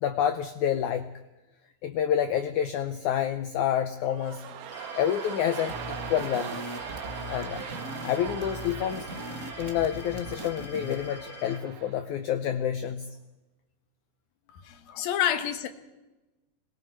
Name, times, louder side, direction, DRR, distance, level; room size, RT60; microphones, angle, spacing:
voice 1, 0.0-1.1 1.8-4.4 4.9-6.8 7.3-7.6 8.0-9.1 9.6-13.2 14.9-15.1, left 9 dB, 90° left, 1.7 m, -28 dB
sound 1, 4.0-12.1 12.4-12.5, right 9 dB, 75° right, 3.1 m, -41 dB
sound 2, 4.7-11.6, left 3 dB, 35° left, 3.3 m, -45 dB
sound 3, 5.7-11.1, equal, 55° right, 0.8 m, -40 dB
voice 2, 14.5-15.7, left 10 dB, 70° left, 3.0 m, -28 dB
26.5 x 22.0 x 4.6 m
omnidirectional pair, 4.5 m